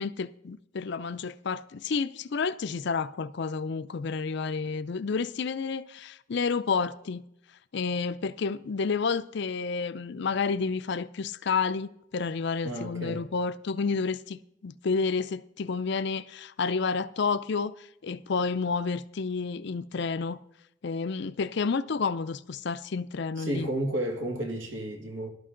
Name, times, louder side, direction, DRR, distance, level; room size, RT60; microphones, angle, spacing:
voice 1, 0.0-7.2 7.7-17.7 18.0-20.4 20.8-23.7, left 5 dB, 60° left, 0.5 m, -30 dB
voice 2, 12.6-13.2 23.4-25.3, right 1 dB, 70° right, 2.0 m, -32 dB
13.5 x 12.0 x 3.8 m
head